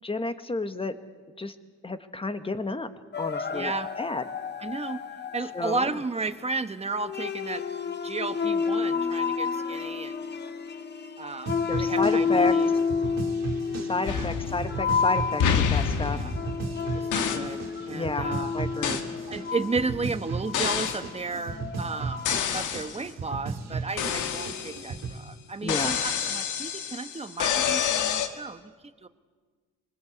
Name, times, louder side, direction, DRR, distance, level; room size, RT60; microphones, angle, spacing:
voice 1, 0.0-0.9 1.4-1.5 1.8-2.9 3.2-3.7 4.0-4.2 5.5-5.9 11.7-12.5 13.9-15.4 15.7-16.2 17.9-18.3 18.5-19.0 25.6-25.9, left 3 dB, 20° left, 10 dB, 1.5 m, -30 dB
sound 1, 3.1-5.8 7.0-22.4, left 5 dB, 35° left, 1.2 m, -30 dB
voice 2, 3.5-3.9 4.6-5.0 5.3-7.6 8.0-10.1 11.2-12.8 14.0-14.3 16.1-16.3 16.9-18.5 19.3-22.2 22.5-29.1, right 3 dB, 20° right, 10 dB, 1.2 m, -33 dB
sound 2, 11.5-25.2, right 4 dB, 60° right, 2.6 m, -36 dB
sound 3, 14.0-15.0 15.4-16.7 17.1-17.6 18.8-19.1 20.5-21.1 22.2-23.0 24.0-25.1 25.7-28.3, left 8 dB, 85° left, 1.7 m, -28 dB
24.5 x 20.0 x 8.4 m, 1.5 s
cardioid pair, 90°, 30 cm